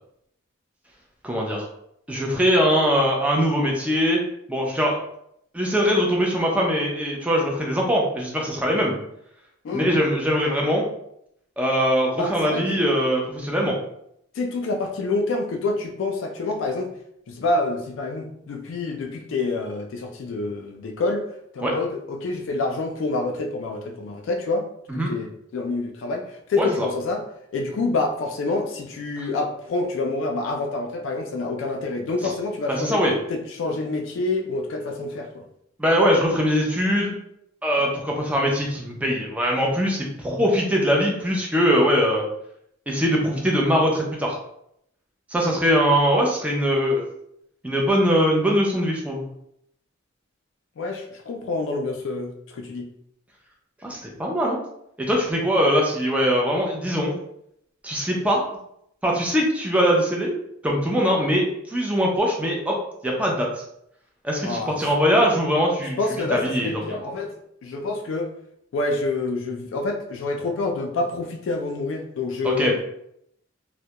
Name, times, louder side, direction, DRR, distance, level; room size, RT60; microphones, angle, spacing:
voice 1, 1.2-1.7 2.1-4.2 4.5-5.0 5.5-9.0 9.7-10.9 11.6-13.7 21.6-21.8 24.9-25.1 26.6-26.9 29.2-29.3 32.7-33.1 35.8-37.1 37.6-42.2 42.9-44.4 45.3-47.0 47.6-49.2 53.8-54.6 55.0-57.1 57.8-58.4 59.0-60.3 60.6-62.8 63.0-63.5 64.2-66.0 66.3-66.8 72.4-72.8, equal, 5° right, -1 dB, 0.4 m, -21 dB
voice 2, 9.6-10.0 12.2-12.8 13.6-13.8 14.3-16.9 17.3-21.2 21.5-24.7 24.9-27.2 27.5-33.0 33.3-35.4 50.8-52.9 64.4-64.9 66.0-67.3 67.6-68.3 68.7-72.8, left 3 dB, 70° left, 3 dB, 0.3 m, -27 dB
2.2 x 2.1 x 2.8 m, 0.74 s
head